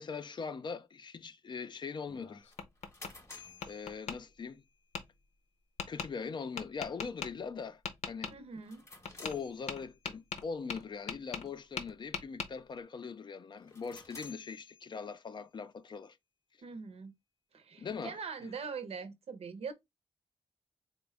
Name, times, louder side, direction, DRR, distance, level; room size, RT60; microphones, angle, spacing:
voice 1, 0.0-2.5 3.7-4.6 5.9-7.8 8.1-8.4 9.2-16.2 17.8-18.5, left 5 dB, 45° left, 0.4 m, -41 dB
Tap, 2.1-3.1 3.6-4.2 4.9-5.0 5.8-6.1 6.6-7.3 7.9-8.3 9.1-9.4 9.7-11.5 11.8-12.5, left 5 dB, 90° left, 0.7 m, -39 dB
sound 1, 2.5-4.8 8.5-10.2 13.6-15.4, left 3 dB, 25° left, 0.8 m, -54 dB
voice 2, 8.3-8.9 16.6-17.1 17.5-19.7, right 5 dB, 65° right, 0.7 m, -42 dB
4.0 x 2.1 x 3.4 m
wide cardioid pair, 170°, 11 cm